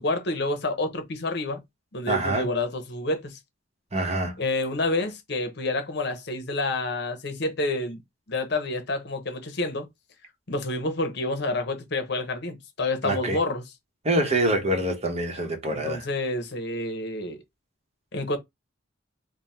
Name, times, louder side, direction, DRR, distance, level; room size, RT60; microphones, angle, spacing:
voice 1, 0.0-1.6 1.9-3.4 4.4-8.0 8.3-9.9 10.5-13.6 15.7-17.4 18.1-18.4, left 2 dB, 60° left, 0.9 m, -28 dB
voice 2, 2.1-2.5 3.9-4.4 13.0-13.4 14.0-16.1, right 1 dB, 35° right, 0.9 m, -25 dB
3.7 x 2.2 x 4.2 m
head